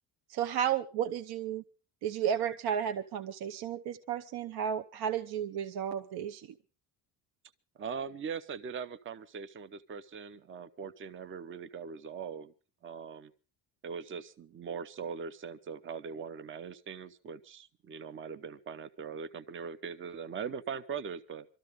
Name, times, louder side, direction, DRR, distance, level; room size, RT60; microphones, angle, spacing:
voice 1, 0.3-1.6 2.0-6.5, right 9 dB, 65° right, 10 dB, 0.9 m, -33 dB
voice 2, 7.8-12.5 12.8-13.3 13.8-21.5, right 6 dB, 30° right, 13 dB, 0.8 m, -41 dB
24.5 x 13.5 x 3.5 m, 0.33 s
cardioid pair, 150°, 41 cm